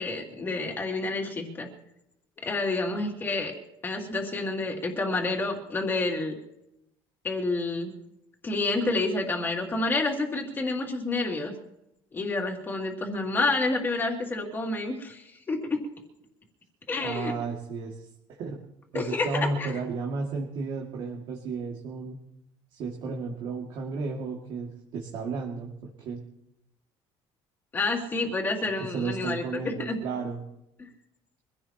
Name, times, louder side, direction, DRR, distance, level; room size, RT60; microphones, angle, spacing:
voice 1, 0.0-1.7 2.4-3.5 3.8-6.4 7.2-7.9 8.4-11.5 12.1-15.8 16.9-17.3 18.9-19.7 27.7-29.4 29.8-30.0, left 3 dB, 20° left, 1 dB, 2.8 m, -29 dB
voice 2, 17.0-18.1 18.4-18.6 18.9-22.2 22.7-26.2 28.8-30.4, right 4 dB, 55° right, -1 dB, 2.4 m, -33 dB
24.5 x 16.0 x 3.0 m, 0.83 s
cardioid pair, 170°, 10 cm